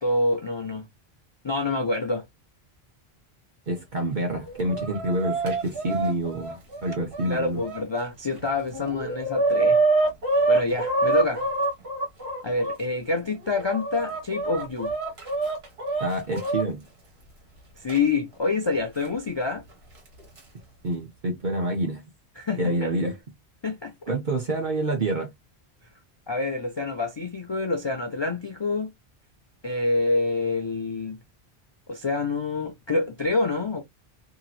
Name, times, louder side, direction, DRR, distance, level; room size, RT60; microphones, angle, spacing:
voice 1, 0.0-0.9 1.4-2.2 7.2-9.8 10.5-11.5 12.4-14.9 17.8-19.6 22.4-22.9 23.6-23.9 26.3-28.9 29.6-31.2 31.9-33.8, left 3 dB, 50° left, 0.3 m, -27 dB
voice 2, 3.7-7.6 16.0-16.8 20.8-22.0 22.6-23.2 24.1-25.3, right 1 dB, 50° right, 0.8 m, -27 dB
Chicken rooster, 4.3-7.8 8.4-8.5 8.7-12.8 13.4-16.6 17.9-18.0 19.0-19.1 20.1-20.4, right 3 dB, 70° right, 1.5 m, -26 dB
2.8 x 2.8 x 2.3 m
omnidirectional pair, 1.1 m